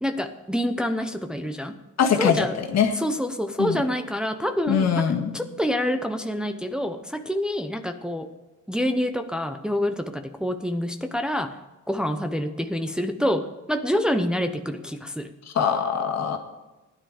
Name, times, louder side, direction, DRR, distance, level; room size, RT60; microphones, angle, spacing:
voice 1, 0.0-1.8 2.2-2.6 2.9-8.3 8.7-11.6 11.9-15.3, equal, 5° right, 6 dB, 0.8 m, -27 dB
voice 2, 2.0-2.4 2.7-2.9 3.6-3.8 4.7-5.3 15.6-16.4, left 7 dB, 60° left, 2 dB, 1.8 m, -22 dB
15.0 x 10.0 x 5.0 m, 1.1 s
cardioid pair, 90°, 30 cm